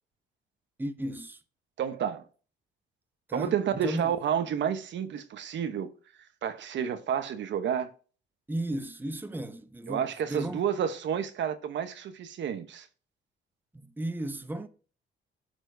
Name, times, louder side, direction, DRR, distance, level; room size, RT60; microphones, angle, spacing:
voice 1, 0.8-1.4 3.3-4.1 8.5-10.6 13.7-14.7, right 1 dB, 10° right, 0.9 m, -35 dB
voice 2, 1.8-2.2 3.3-5.9 6.4-7.9 9.9-12.9, right 8 dB, 65° right, 1.0 m, -30 dB
13.0 x 4.4 x 2.7 m
cardioid pair, 90°, 20 cm